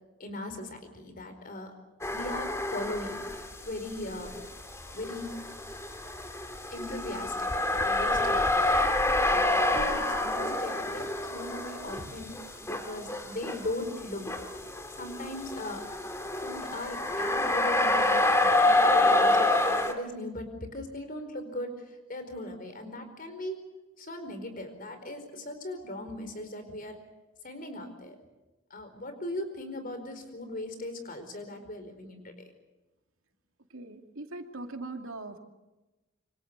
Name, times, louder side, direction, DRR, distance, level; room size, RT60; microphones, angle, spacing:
voice 1, 0.2-1.7 2.1-3.2 3.6-4.4 4.9-5.4 6.7-8.8 9.2-12.3 12.6-14.5 15.0-15.9 16.4-23.6 24.0-27.0 27.4-28.2 28.7-32.5, left 1 dB, 45° left, 8 dB, 4.7 m, -39 dB
sound 1, 2.0-3.5 3.9-19.9, left 2 dB, 15° left, 2.3 m, -27 dB
voice 2, 33.7-35.4, right 2 dB, 90° right, 5 dB, 2.6 m, -40 dB
27.0 x 25.0 x 6.8 m, 1.1 s
head